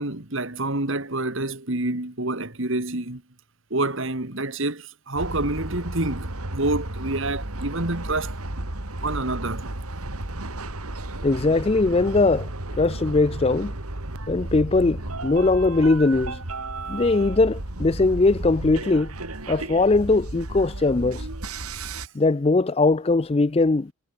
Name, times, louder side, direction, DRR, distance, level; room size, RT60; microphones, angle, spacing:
voice 1, 0.0-3.2 3.7-8.4 9.0-9.7 21.8-22.0, right 2 dB, 60° right, 2.3 m, -28 dB
sound 1, 5.2-22.1, right 2 dB, 85° right, 2.9 m, -33 dB
voice 2, 11.2-12.5 12.8-13.8 14.3-16.4 16.9-19.1 19.5-21.3 22.1-23.9, left 3 dB, 25° left, 0.4 m, -20 dB
head